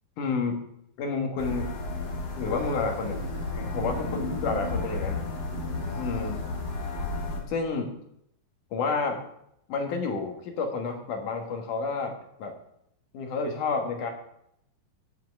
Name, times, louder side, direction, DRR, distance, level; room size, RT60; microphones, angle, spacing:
voice 1, 0.2-0.6 1.0-1.7 2.4-3.2 3.6-5.2 6.0-6.5 7.4-8.0 8.7-9.2 9.7-12.5 13.1-14.1, left 4 dB, 65° left, 3 dB, 2.9 m, -30 dB
sound 1, 1.4-7.4, left 2 dB, 35° left, 1.9 m, -32 dB
10.5 x 5.8 x 8.4 m, 0.74 s
omnidirectional pair, 4.2 m